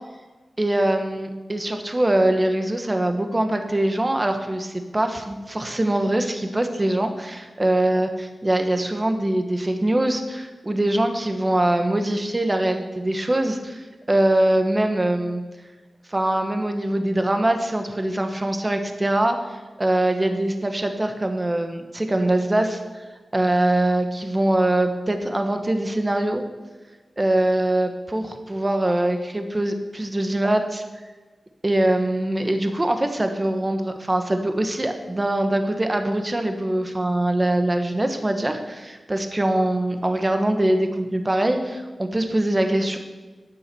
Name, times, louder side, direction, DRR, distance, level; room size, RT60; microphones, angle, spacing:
voice 1, 0.6-15.4 16.1-22.8 23.3-26.4 27.2-30.8 31.6-43.0, right 1 dB, 20° right, 6 dB, 1.3 m, -23 dB
12.0 x 9.2 x 7.0 m, 1.2 s
wide cardioid pair, 105°, 0 cm